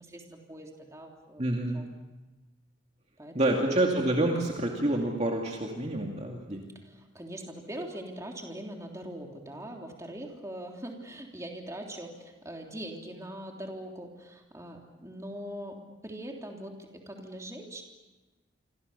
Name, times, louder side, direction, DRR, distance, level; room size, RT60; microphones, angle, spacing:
voice 1, 0.0-1.8 3.2-3.7 6.8-17.8, right 1 dB, 15° right, 1 dB, 3.3 m, -42 dB
voice 2, 1.4-1.8 3.3-6.7, right 1 dB, 35° right, 0 dB, 2.4 m, -28 dB
28.5 x 24.5 x 6.9 m, 1.1 s
head